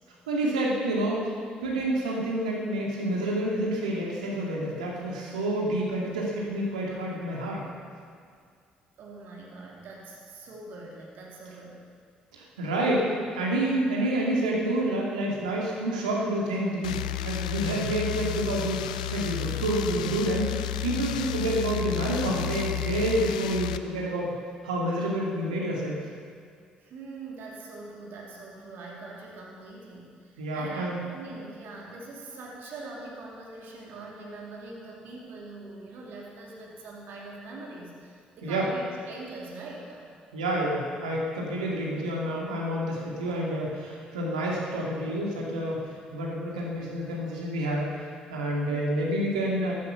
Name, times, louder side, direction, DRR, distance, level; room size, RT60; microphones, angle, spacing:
voice 1, 0.3-1.3 1.6-7.7 12.3-24.3 24.6-26.0 30.4-31.0 38.4-38.7 40.3-47.9 48.3-49.7, right 1 dB, 80° right, -3 dB, 2.4 m, -28 dB
voice 2, 9.0-11.8 26.8-40.1, right 2 dB, 60° right, -3 dB, 2.7 m, -43 dB
sound 1, 16.8-23.8, left 11 dB, 80° left, 0.4 m, -32 dB
14.0 x 13.5 x 5.8 m, 2.2 s
figure-of-eight pair, 45°, 4 cm